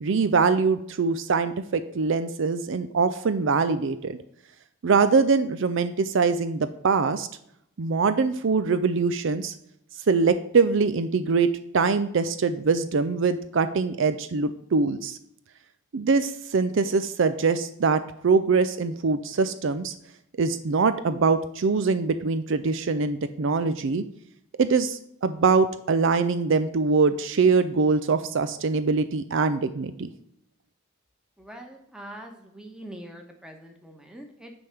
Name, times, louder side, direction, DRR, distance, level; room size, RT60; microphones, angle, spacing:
voice 1, 0.0-4.2 4.8-7.3 7.8-9.5 10.1-11.5 11.7-15.2 15.9-19.9 20.4-24.0 24.6-30.1, right 4 dB, 60° right, 11 dB, 0.5 m, -23 dB
voice 2, 31.4-34.5, right 1 dB, 5° right, 2 dB, 1.1 m, -43 dB
9.7 x 3.5 x 5.8 m, 0.73 s
head